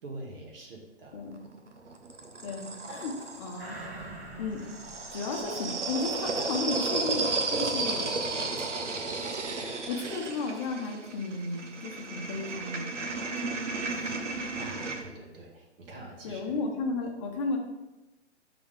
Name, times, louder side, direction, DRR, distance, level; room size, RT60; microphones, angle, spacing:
voice 1, 0.0-1.3 14.6-16.6, right 1 dB, 50° right, -2 dB, 2.2 m, -45 dB
sound 1, 1.3-3.8 4.6-15.0, right 3 dB, 75° right, 1.2 m, -33 dB
voice 2, 2.4-3.8 4.4-4.6 5.1-8.1 9.9-12.9 16.2-17.6, left 3 dB, 25° left, 2 dB, 1.1 m, -34 dB
sound 2, 3.6-6.5 6.9-7.0, right 2 dB, 15° right, 0.5 m, -45 dB
11.0 x 4.0 x 3.6 m, 1.0 s
figure-of-eight pair, 140°, 36 cm